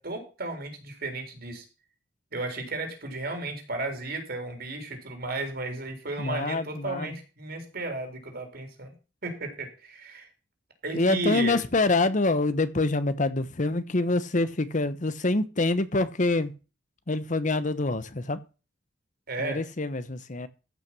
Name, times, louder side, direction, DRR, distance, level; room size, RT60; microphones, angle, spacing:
voice 1, 0.0-1.6 2.3-8.9 9.2-10.3 10.8-11.6 19.3-19.6, right 2 dB, 55° right, 4.0 m, -34 dB
voice 2, 6.2-7.1 10.9-16.5 17.1-18.4 19.4-20.5, left 2 dB, 45° left, 1.0 m, -26 dB
14.5 x 6.0 x 6.1 m
head